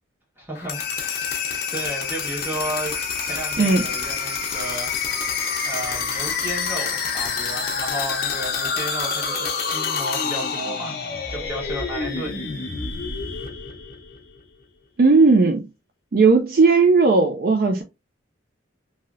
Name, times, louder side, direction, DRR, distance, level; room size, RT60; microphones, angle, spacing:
voice 1, 0.4-1.4 1.7-2.9 3.2-5.1 5.6-11.0 11.3-12.4, right 1 dB, 10° right, 1.2 m, -33 dB
sound 1, 0.5-14.4, left 5 dB, 50° left, 0.7 m, -27 dB
voice 2, 15.0-15.7 16.1-17.8, right 4 dB, 50° right, 0.4 m, -16 dB
3.1 x 2.7 x 2.4 m
head